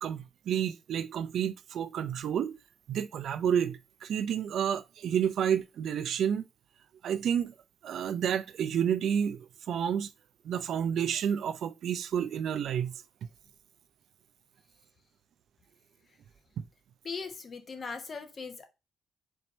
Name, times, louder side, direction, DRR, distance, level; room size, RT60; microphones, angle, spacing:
voice 1, 0.0-2.5 2.9-6.5 7.0-7.5 7.8-10.1 10.4-12.9 16.6-16.7, right 8 dB, 70° right, 0.5 m, -30 dB
voice 2, 17.0-18.7, left 5 dB, 40° left, 0.9 m, -39 dB
4.3 x 2.7 x 4.4 m
cardioid pair, 90°, 0 cm